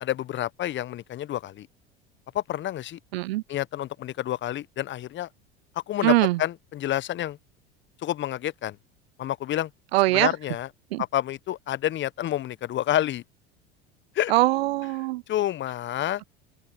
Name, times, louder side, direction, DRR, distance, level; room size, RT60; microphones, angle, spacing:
voice 1, 0.0-1.7 2.3-3.0 3.5-5.3 5.9-7.4 8.0-8.8 9.2-9.7 10.1-10.7 11.0-13.2 14.1-14.3 15.3-16.2, left 12 dB, 35° left, 0.9 m, -29 dB
voice 2, 3.1-3.4 6.0-6.4 9.9-10.3 10.9-11.0 14.3-15.2, right 18 dB, 70° right, 1.0 m, -22 dB
hypercardioid pair, 75°, 32 cm